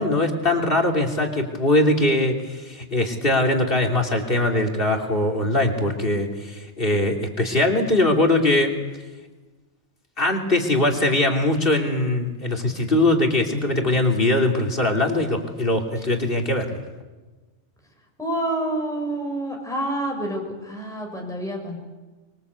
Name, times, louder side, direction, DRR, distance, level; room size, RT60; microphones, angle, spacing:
voice 1, 0.0-8.7 10.2-16.8, left 1 dB, 50° left, 2 dB, 3.4 m, -21 dB
voice 2, 18.2-21.8, right 1 dB, 5° left, 0 dB, 5.1 m, -28 dB
25.0 x 23.5 x 8.3 m, 1.2 s
omnidirectional pair, 1.2 m